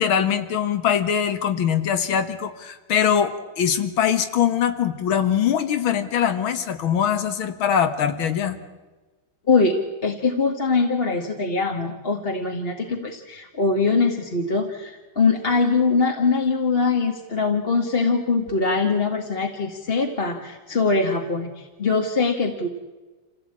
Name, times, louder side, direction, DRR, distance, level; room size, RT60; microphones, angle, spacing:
voice 1, 0.0-8.6, left 8 dB, 80° left, 10 dB, 2.2 m, -22 dB
voice 2, 9.5-22.7, left 4 dB, 30° left, 2 dB, 1.6 m, -22 dB
27.5 x 16.0 x 8.7 m, 1.3 s
omnidirectional pair, 2.2 m